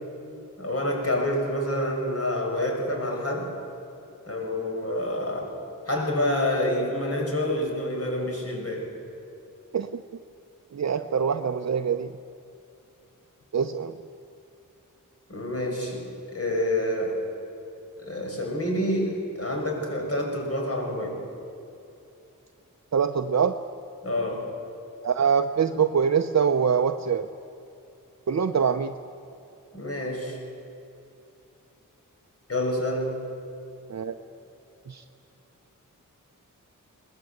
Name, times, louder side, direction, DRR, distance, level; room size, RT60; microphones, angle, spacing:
voice 1, 0.6-3.5 4.3-5.5 5.9-8.9 15.3-17.1 18.0-21.2 24.0-24.5 29.7-30.4 32.5-33.1, left 1 dB, 45° left, 1 dB, 5.9 m, -28 dB
voice 2, 10.7-12.1 13.5-13.9 22.9-23.6 25.0-27.3 28.3-28.9 33.9-34.2 34.9-35.0, right 7 dB, 55° right, 6 dB, 0.8 m, -24 dB
21.5 x 20.0 x 8.0 m, 2.8 s
wide cardioid pair, 70°, 33 cm